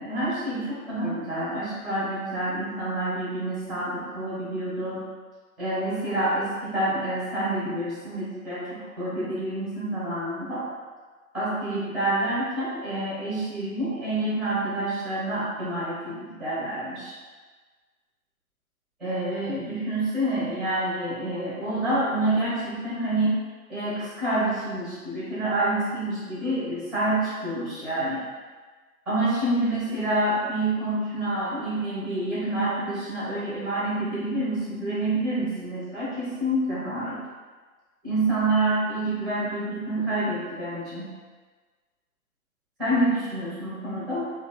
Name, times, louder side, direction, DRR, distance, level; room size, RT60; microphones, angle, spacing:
voice 1, 0.0-5.0 5.6-10.6 11.3-17.2 19.0-23.4 23.7-28.3 29.0-37.2 38.0-41.1 42.8-44.3, right 1 dB, ahead, -10 dB, 1.4 m, -27 dB
3.8 x 2.3 x 2.3 m, 1.4 s
figure-of-eight pair, 130°, 45 cm